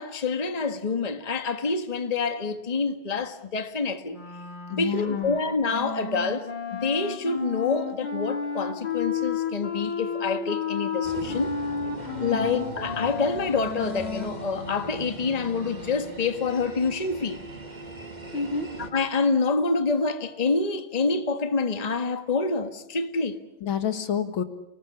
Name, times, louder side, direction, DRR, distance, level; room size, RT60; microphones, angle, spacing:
voice 1, 0.0-4.2 4.7-6.5 6.8-11.6 12.2-17.4 18.9-23.4, left 4 dB, 20° left, 1.5 m, -27 dB
Wind instrument woodwind instrument, 4.1-16.2, left 6 dB, 60° left, 3.7 m, -33 dB
voice 2, 4.7-5.4 12.3-12.7 18.3-18.7 23.6-24.4, left 7 dB, 80° left, 2.5 m, -29 dB
sound 1, 11.0-18.9, right 2 dB, 20° right, 2.2 m, -40 dB
29.5 x 19.0 x 8.6 m
omnidirectional pair, 2.2 m